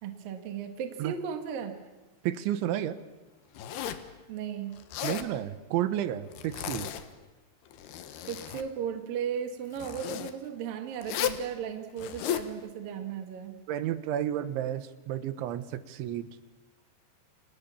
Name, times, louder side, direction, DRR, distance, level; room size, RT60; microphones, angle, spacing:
voice 1, 0.0-1.7 4.3-4.8 8.3-13.5, right 8 dB, 55° right, 6 dB, 3.2 m, -36 dB
voice 2, 2.2-3.0 5.0-6.9 13.7-16.3, right 11 dB, 80° right, 12 dB, 3.7 m, -31 dB
Zipper (clothing), 3.5-4.1 4.8-5.3 6.3-7.2 7.7-8.7 9.7-10.3 11.0-11.4 12.0-12.5, left 10 dB, 70° left, 3.1 m, -34 dB
29.5 x 28.5 x 7.1 m, 1.2 s
omnidirectional pair, 5.4 m